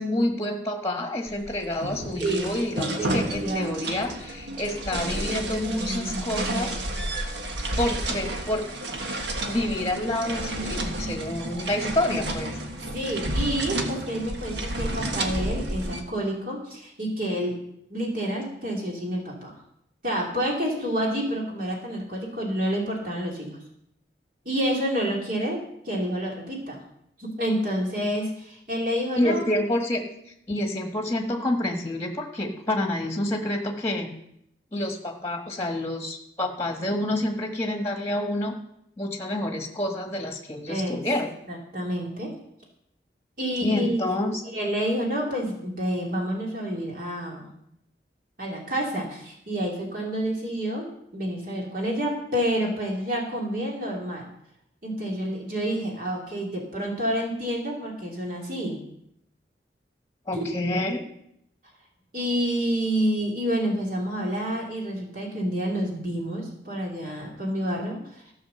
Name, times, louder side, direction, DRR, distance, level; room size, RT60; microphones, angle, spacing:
voice 1, 0.0-6.7 7.8-8.7 9.5-12.6 29.2-30.0 30.5-34.1 34.7-38.5 39.0-41.3 43.6-44.4 60.3-61.0, left 1 dB, 15° left, 3 dB, 1.4 m, -28 dB
sound 1, 1.3-16.0, right 1 dB, 75° right, 1.4 m, -31 dB
voice 2, 2.2-2.5 3.0-3.8 12.8-17.6 17.9-19.5 20.0-23.6 24.4-25.6 25.8-26.8 27.2-29.5 40.7-41.0 41.5-42.3 43.4-44.0 44.5-47.5 48.4-54.2 54.8-58.8 60.3-60.5 62.1-68.3, equal, 50° right, -2 dB, 2.7 m, -28 dB
14.5 x 5.8 x 6.8 m, 0.75 s
head